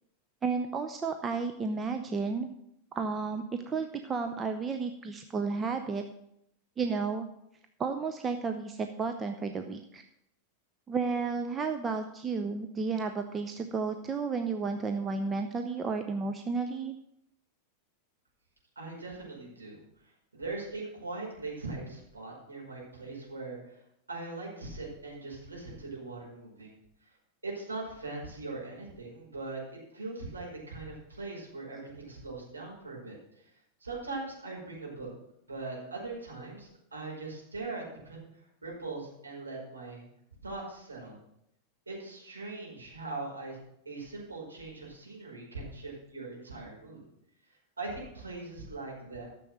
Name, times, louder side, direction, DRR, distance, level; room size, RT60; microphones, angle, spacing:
voice 1, 0.4-2.5 3.0-6.0 6.8-7.3 7.8-10.0 10.9-17.0, right 4 dB, 20° right, 6 dB, 0.8 m, -32 dB
voice 2, 18.7-19.8 20.3-23.8 24.1-26.8 27.0-27.1 27.4-33.4 33.8-35.1 35.5-40.0 40.4-41.2 41.8-43.6 43.8-47.0 47.8-49.3, right 3 dB, 80° right, -3 dB, 5.1 m, -41 dB
13.5 x 6.9 x 6.3 m, 0.78 s
figure-of-eight pair, 90°, 0 cm